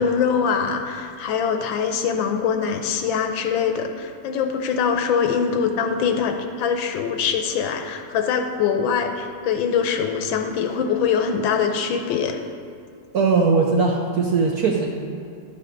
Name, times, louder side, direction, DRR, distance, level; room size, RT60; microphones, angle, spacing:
voice 1, 0.0-12.4, left 6 dB, 75° left, 5 dB, 1.4 m, -23 dB
voice 2, 13.1-14.9, right 4 dB, 70° right, 0 dB, 0.9 m, -19 dB
11.0 x 5.7 x 5.2 m, 2.3 s
omnidirectional pair, 2.2 m